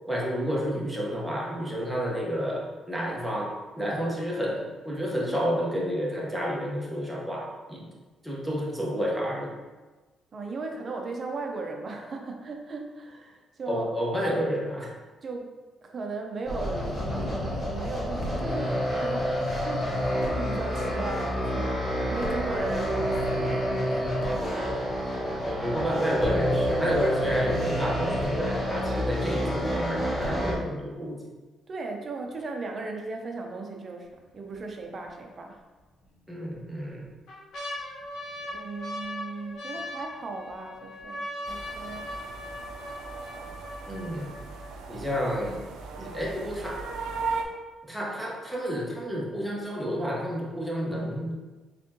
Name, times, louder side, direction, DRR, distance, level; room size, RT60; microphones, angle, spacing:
voice 1, 0.1-7.9 8.2-9.6 13.7-14.9 24.2-24.8 25.4-31.4 36.3-37.1 43.9-44.3 44.9-45.7 46.0-46.9 47.8-51.4, equal, 5° right, -4 dB, 1.1 m, -30 dB
voice 2, 10.3-13.9 15.2-15.5 15.8-19.9 20.2-24.0 31.7-35.6 38.5-42.1, right 3 dB, 45° right, 3 dB, 0.7 m, -37 dB
sound 1, 16.5-30.5, equal, 30° left, 1.3 m, -28 dB
sound 2, 34.1-34.6 35.0-35.1 36.0-36.6 37.0-45.0 45.7-45.8 46.0-46.4 46.9-47.0, left 1 dB, 75° left, 1.2 m, -39 dB
sound 3, 41.4-47.4, right 4 dB, 90° right, 0.4 m, -37 dB
4.1 x 3.6 x 2.9 m, 1.3 s
cardioid pair, 90°, 0 cm